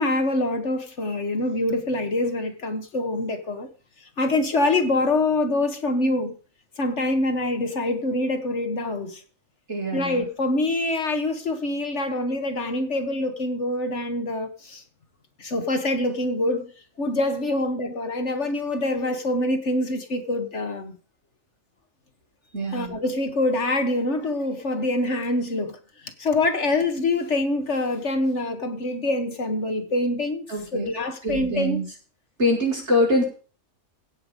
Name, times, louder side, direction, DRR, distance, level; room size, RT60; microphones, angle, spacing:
voice 1, 0.0-3.7 4.2-6.3 6.8-9.2 9.9-14.8 15.4-16.7 17.0-20.9 22.7-25.8 26.2-30.5 30.7-31.8, left 2 dB, 60° left, 1.8 m, -25 dB
voice 2, 9.7-10.2 22.5-22.9 30.5-30.9 31.2-31.8 32.4-33.2, left 1 dB, 55° right, 5.6 m, -24 dB
16.5 x 8.0 x 5.3 m
omnidirectional pair, 1.4 m